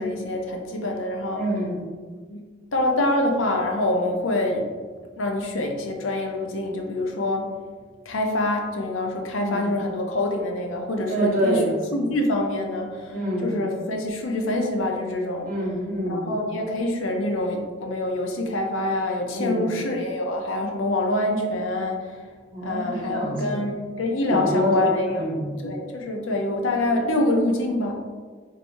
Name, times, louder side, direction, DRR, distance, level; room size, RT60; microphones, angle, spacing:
voice 1, 0.0-1.4 2.3-2.4 2.7-4.7 5.2-7.5 8.1-15.6 16.0-22.2 22.6-25.2 25.6-27.9, left 1 dB, 85° left, 2 dB, 0.6 m, -25 dB
voice 2, 1.3-1.8 9.3-9.7 11.1-11.7 13.1-13.5 15.4-16.3 19.3-19.7 22.5-23.5 24.3-25.5, equal, 45° right, -5 dB, 1.5 m, -26 dB
4.5 x 3.3 x 2.6 m, 1.5 s
head